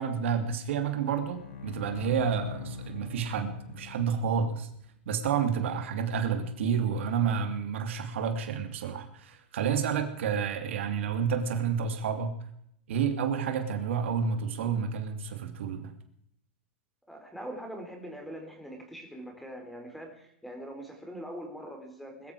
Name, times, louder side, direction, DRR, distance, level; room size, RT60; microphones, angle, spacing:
voice 1, 0.0-4.7 5.1-12.3 12.9-15.9, right 6 dB, 75° right, 6 dB, 2.8 m, -30 dB
Bowed string instrument, 1.0-4.5, left 6 dB, 65° left, 3.8 m, -43 dB
voice 2, 17.1-22.3, equal, ahead, 4 dB, 4.1 m, -42 dB
21.5 x 13.5 x 4.9 m, 0.71 s
hypercardioid pair, 135°, 7 cm